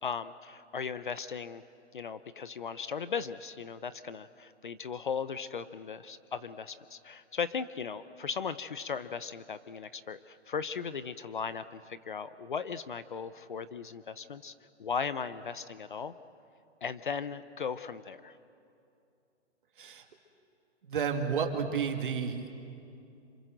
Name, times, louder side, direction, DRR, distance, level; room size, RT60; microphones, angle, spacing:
voice 1, 0.0-1.6 1.9-14.5 14.8-16.1 16.8-18.4, left 6 dB, 45° left, 14 dB, 0.7 m, -37 dB
voice 2, 19.8-20.1 20.8-22.5, right 6 dB, 45° right, 5 dB, 2.2 m, -31 dB
27.5 x 26.5 x 7.8 m, 2.6 s
hypercardioid pair, 175°, 35 cm